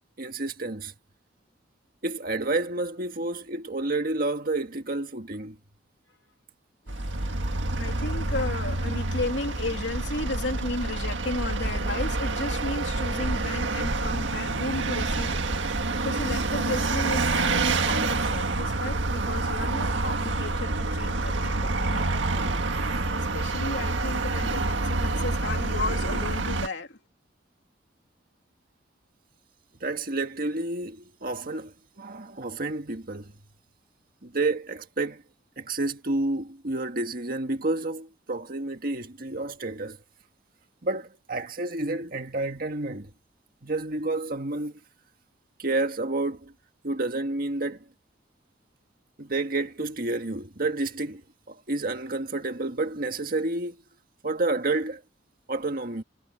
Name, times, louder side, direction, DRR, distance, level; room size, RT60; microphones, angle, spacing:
voice 1, 0.2-0.9 2.0-5.6 29.8-33.3 34.2-35.2 35.6-40.0 40.8-43.1 43.6-44.8 45.6-46.5 46.8-47.8 49.2-53.8 54.2-55.0 55.5-56.0, right 2 dB, 50° right, 1.7 m, -30 dB
voice 2, 6.8-15.4 16.0-27.0, left 2 dB, 75° left, 2.9 m, -34 dB
Vehicle, 6.9-26.7, right 2 dB, 85° right, 1.7 m, -27 dB
head